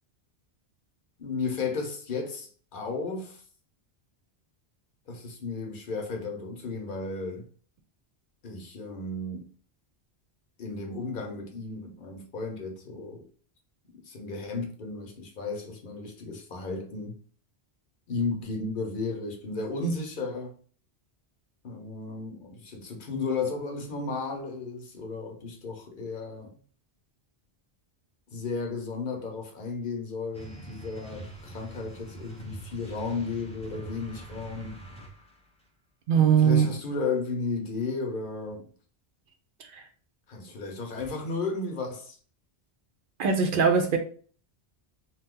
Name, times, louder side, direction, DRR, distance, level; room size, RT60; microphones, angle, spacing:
voice 1, 1.2-3.4 5.1-7.5 8.4-9.5 10.6-13.3 14.0-17.2 18.1-20.5 21.6-26.5 28.3-34.8 36.4-38.7 40.3-42.2, left 3 dB, 55° left, 0.8 m, -34 dB
sound 1, 30.3-35.5, right 2 dB, 5° left, 0.5 m, -44 dB
voice 2, 36.1-36.7 39.6-39.8 43.2-44.0, right 7 dB, 60° right, 0.7 m, -21 dB
2.7 x 2.3 x 3.6 m
omnidirectional pair, 1.1 m